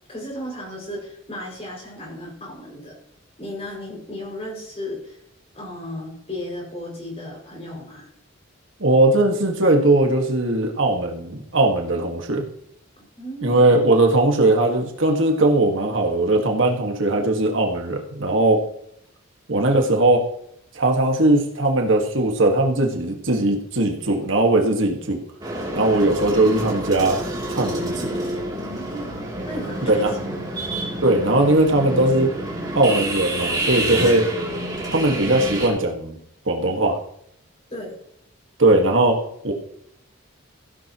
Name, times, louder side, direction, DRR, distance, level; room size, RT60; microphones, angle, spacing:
voice 1, 0.1-2.9 3.4-5.2 5.5-8.1 13.0-13.8 28.7-29.2 29.5-30.5 37.7-38.0, left 1 dB, 30° left, -2 dB, 5.8 m, -35 dB
voice 2, 8.8-12.4 13.4-18.6 19.5-20.2 20.8-25.2 25.8-27.2 27.5-28.1 29.8-30.1 31.0-32.3 32.7-34.2 34.9-36.2 36.5-37.0 38.6-39.2 39.4-39.5, right 2 dB, 65° right, 2 dB, 1.7 m, -19 dB
sound 1, 25.4-35.7, right 1 dB, 20° right, 2.9 m, -28 dB
15.5 x 10.5 x 3.0 m, 0.73 s
head